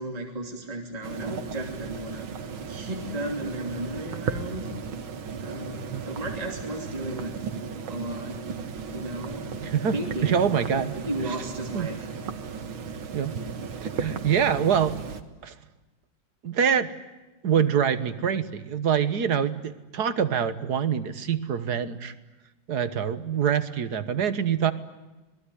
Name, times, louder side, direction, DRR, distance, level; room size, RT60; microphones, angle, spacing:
voice 1, 0.0-2.3 2.7-4.7 5.4-7.4 7.8-8.4 8.9-9.6 9.9-12.1, right 1 dB, 20° right, 1 dB, 3.0 m, -34 dB
sound 1, 1.0-15.2, right 5 dB, 75° right, 2.3 m, -35 dB
voice 2, 9.6-10.0 10.2-10.9 11.7-11.9 13.1-13.3 13.8-15.0 15.4-15.5 16.4-16.9 17.4-22.1 22.7-24.7, right 8 dB, 55° right, 12 dB, 1.7 m, -25 dB
27.0 x 20.0 x 10.0 m, 1.1 s
omnidirectional pair, 2.3 m